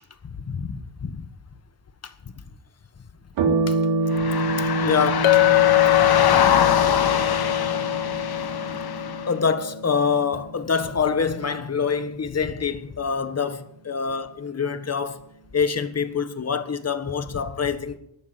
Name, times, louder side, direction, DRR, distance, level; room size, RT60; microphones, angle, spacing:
voice 1, 0.3-1.2 3.7-3.8 4.8-5.5 9.3-15.2 15.5-18.0, left 6 dB, 35° left, 1.5 m, -25 dB
sound 1, 3.4-12.2, right 2 dB, 80° right, 3.5 m, -28 dB
sound 2, 4.1-9.3, left 8 dB, 55° left, 1.5 m, -24 dB
Chink clink, 5.2-9.7, left 21 dB, 85° left, 1.2 m, -22 dB
14.0 x 9.5 x 9.0 m
cardioid pair, 90°, 45 cm